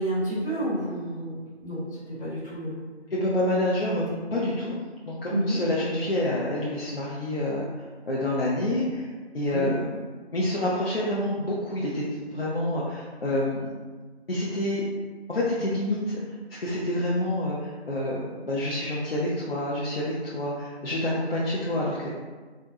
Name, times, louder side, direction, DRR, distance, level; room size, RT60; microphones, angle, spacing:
voice 1, 0.0-2.8 3.9-4.2 5.3-5.6 9.5-9.7, right 1 dB, 5° left, -20 dB, 1.2 m, -30 dB
voice 2, 3.1-4.0 4.3-4.8 5.0-7.7 8.1-9.1 9.3-9.8 10.3-12.0 12.3-13.7 14.3-14.8 15.3-16.2 16.6-22.1, left 1 dB, 60° left, -6 dB, 0.6 m, -27 dB
3.7 x 2.2 x 2.6 m, 1.4 s
figure-of-eight pair, 165°, 33 cm